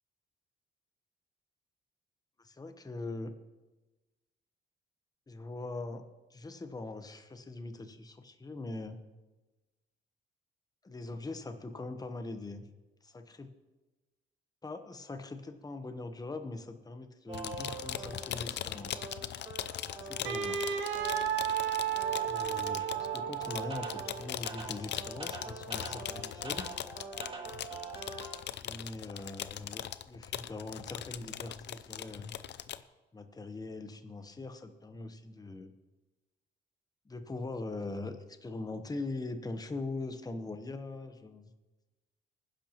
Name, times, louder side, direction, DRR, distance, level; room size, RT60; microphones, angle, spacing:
voice 1, 2.4-3.3 5.3-6.0 6.3-9.0 10.8-12.6 13.0-13.5 14.6-19.1 20.0-20.6 22.3-26.7 28.6-32.4 33.1-35.7 37.0-41.5, left 2 dB, 20° left, 8 dB, 1.0 m, -42 dB
sound 1, 17.3-32.8, left 11 dB, 60° left, 0.6 m, -40 dB
sound 2, 17.3-28.4, right 3 dB, 25° right, 2.2 m, -45 dB
Wind instrument woodwind instrument, 20.2-24.3, right 9 dB, 75° right, 1.0 m, -33 dB
19.5 x 10.5 x 3.0 m, 1.1 s
cardioid pair, 90°, 20 cm